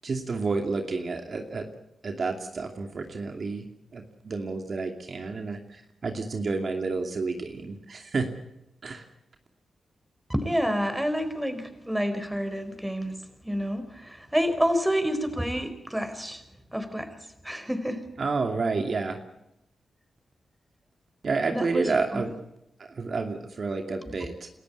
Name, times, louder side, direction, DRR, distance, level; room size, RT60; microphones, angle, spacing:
voice 1, 0.0-1.7 2.0-3.7 3.9-5.6 6.0-8.3 8.8-9.0 18.2-19.2 21.2-22.3 22.9-24.5, right 4 dB, 60° right, 4 dB, 2.6 m, -30 dB
voice 2, 10.3-13.1 13.4-16.4 16.7-17.1 17.4-18.0 21.5-22.3 24.0-24.1, equal, 10° right, 10 dB, 4.6 m, -28 dB
29.0 x 14.0 x 8.3 m, 0.83 s
supercardioid pair, 45°, 0 cm